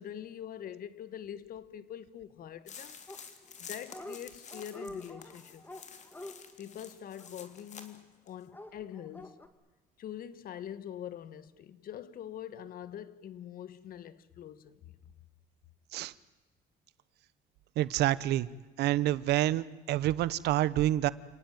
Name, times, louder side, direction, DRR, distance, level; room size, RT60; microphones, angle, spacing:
voice 1, 0.0-3.0 3.6-5.6 6.6-9.4 10.0-14.8, left 10 dB, 60° left, 1.3 m, -44 dB
sound 1, 2.7-8.0 8.3-8.4, left 6 dB, 45° left, 3.0 m, -49 dB
Dog, 3.1-3.6 3.8-4.2 4.5-7.9 8.5-9.5, left 1 dB, 10° left, 2.4 m, -47 dB
voice 2, 17.8-18.5 18.8-21.1, right 14 dB, 80° right, 1.0 m, -28 dB
29.5 x 18.5 x 9.3 m
cardioid pair, 110°, 17 cm